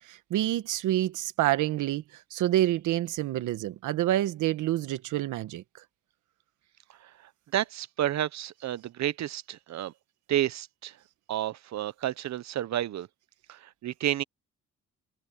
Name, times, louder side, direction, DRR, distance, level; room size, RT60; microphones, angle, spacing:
voice 1, 0.1-5.6, right 14 dB, 85° right, 1.2 m, -28 dB
voice 2, 7.5-9.9 10.3-10.9 11.3-13.1 13.5-14.2, right 12 dB, 65° right, 0.9 m, -30 dB
cardioid pair, 90°, 30 cm